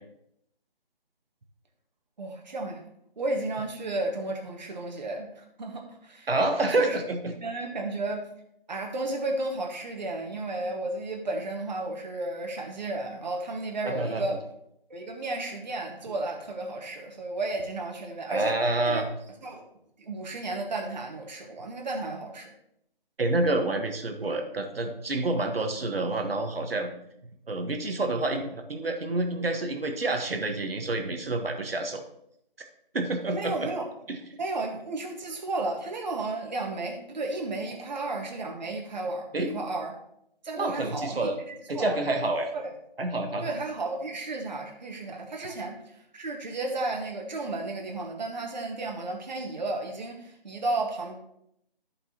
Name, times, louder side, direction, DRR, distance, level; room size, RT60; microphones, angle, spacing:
voice 1, 2.2-2.8 3.2-6.3 6.8-6.9 7.4-8.2 8.7-14.4 14.9-18.6 18.8-19.0 19.4-19.6 20.0-22.5 33.3-33.9 34.4-39.9 40.4-42.0 42.5-42.6 43.4-51.1, right 2 dB, 50° right, 2 dB, 1.6 m, -33 dB
voice 2, 6.3-7.2 13.8-14.2 18.3-19.1 23.2-26.9 27.5-32.0 32.9-33.5 34.1-34.2 39.3-39.5 40.6-41.3 41.7-42.5 43.0-43.5, right 2 dB, 75° right, 4 dB, 1.5 m, -28 dB
14.0 x 5.3 x 2.9 m, 0.75 s
figure-of-eight pair, 165°, 29 cm